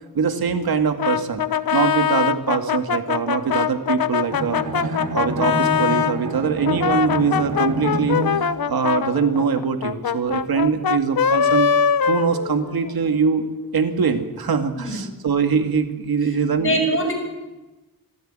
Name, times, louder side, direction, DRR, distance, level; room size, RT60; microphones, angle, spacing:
voice 1, 0.1-1.4 1.7-11.7 12.1-16.7, right 6 dB, 80° right, 6 dB, 2.2 m, -23 dB
Brass instrument, 1.0-6.2 6.6-13.0, left 7 dB, 75° left, 1.0 m, -22 dB
Bowed string instrument, 4.3-8.7, right 2 dB, 60° right, 4.4 m, -28 dB
voice 2, 14.8-15.1 16.6-17.1, equal, 35° left, 2 dB, 6.4 m, -23 dB
25.0 x 15.5 x 9.0 m, 1.1 s
wide cardioid pair, 175°, 36 cm